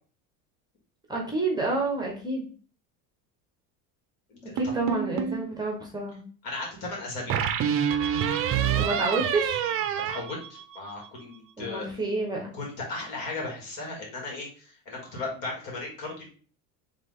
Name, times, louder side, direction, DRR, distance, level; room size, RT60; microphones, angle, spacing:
voice 1, 1.1-2.5 4.4-6.2 8.8-9.6 11.6-12.5, right 3 dB, 10° right, 0 dB, 1.1 m, -29 dB
voice 2, 4.3-4.8 6.4-7.4 10.1-11.8 12.5-16.2, left 2 dB, 60° left, -1 dB, 2.4 m, -36 dB
sound 1, 4.6-5.5 7.3-11.1, right 8 dB, 35° right, 0.5 m, -27 dB
4.0 x 3.4 x 3.6 m, 0.40 s
supercardioid pair, 130°, 39 cm